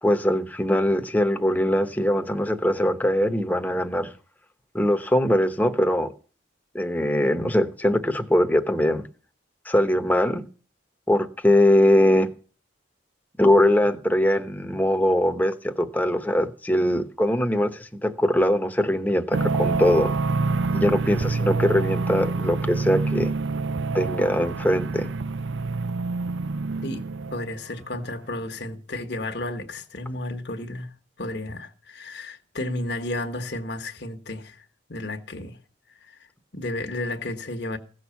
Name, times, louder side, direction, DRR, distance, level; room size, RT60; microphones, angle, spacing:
voice 1, 0.0-4.1 4.7-6.1 6.7-9.0 9.6-10.4 11.1-12.3 13.4-20.1 20.7-23.3 23.9-25.1, left 1 dB, 10° left, 1.0 m, -21 dB
sound 1, 19.3-27.5, right 3 dB, 75° right, 0.5 m, -26 dB
voice 2, 27.3-35.6 35.9-36.3 36.5-37.8, left 1 dB, 60° left, 1.4 m, -33 dB
16.5 x 6.4 x 7.2 m
head